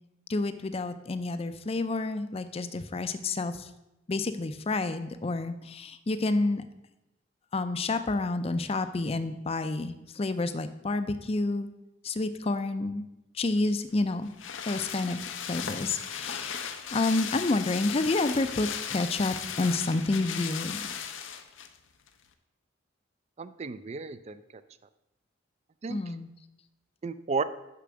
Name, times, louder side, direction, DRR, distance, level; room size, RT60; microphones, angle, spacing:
voice 1, 0.3-3.7 4.1-6.6 7.5-11.7 12.0-13.0 13.3-14.3 14.6-15.2 15.5-20.9 25.9-26.3, left 2 dB, 30° left, 11 dB, 0.5 m, -29 dB
sound 1, 13.6-21.8 22.1-22.2, left 7 dB, 85° left, 0.7 m, -37 dB
voice 2, 23.4-24.6 25.8-26.1 27.0-27.4, right 4 dB, 35° right, 13 dB, 0.4 m, -33 dB
6.8 x 5.8 x 6.2 m, 0.93 s
head